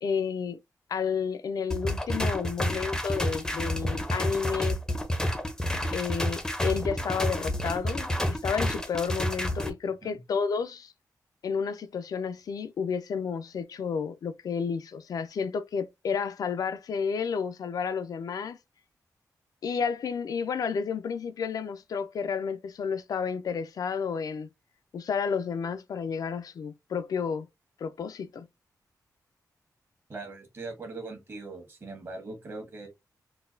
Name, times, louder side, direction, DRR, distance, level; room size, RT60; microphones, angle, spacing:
voice 1, 0.0-0.6 0.9-4.8 5.9-10.9 11.4-18.6 19.6-24.5 24.9-27.5 27.8-28.5, left 6 dB, 65° left, 0.4 m, -31 dB
sound 1, 1.7-9.7, equal, 10° left, 0.5 m, -29 dB
voice 2, 30.1-32.9, right 3 dB, 40° right, 1.2 m, -40 dB
3.9 x 2.2 x 2.5 m
wide cardioid pair, 160°, 7 cm